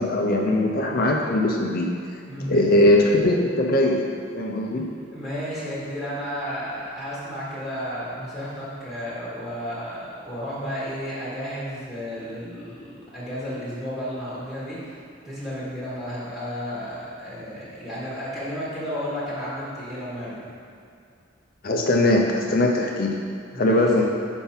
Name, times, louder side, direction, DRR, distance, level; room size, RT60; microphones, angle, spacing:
voice 1, 0.0-2.0 2.5-4.9 21.6-23.2 23.6-24.0, left 1 dB, 50° left, 0 dB, 0.6 m, -20 dB
voice 2, 2.3-2.7 5.1-15.0 15.2-20.4 23.5-24.0, equal, ahead, -11 dB, 1.4 m, -32 dB
5.6 x 4.5 x 5.7 m, 2.5 s
head